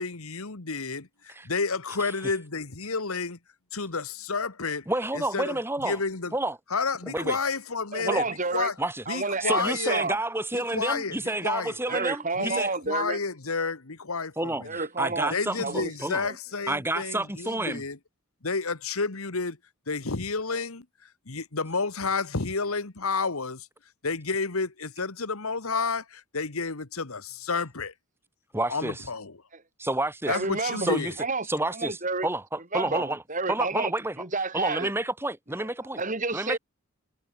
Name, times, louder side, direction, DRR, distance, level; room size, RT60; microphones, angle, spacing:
voice 1, 0.0-3.4 3.7-4.8 5.1-6.3 6.7-8.2 8.5-8.7 9.1-10.0 10.5-12.0 12.4-14.7 15.3-18.0 18.4-19.6 19.9-20.8 21.3-23.7 24.0-27.9 28.7-29.4 30.3-31.1, left 4 dB, 75° left, 1.6 m, -30 dB
voice 2, 4.9-6.0 6.3-6.6 7.1-7.4 8.1-8.3 8.8-9.0 9.4-12.7 14.4-16.2 16.7-17.8 28.5-29.0 29.8-30.4 30.8-31.1 31.5-33.2 33.5-34.2 34.5-36.0 36.3-36.6, right 2 dB, 10° right, 2.6 m, -29 dB
voice 3, 7.9-8.7 9.1-10.2 11.9-13.2 14.6-15.3 15.6-15.9 16.2-16.4 30.3-31.5 31.7-32.3 32.7-33.9 34.2-34.9 35.9-36.6, right 3 dB, 35° right, 2.4 m, -30 dB
head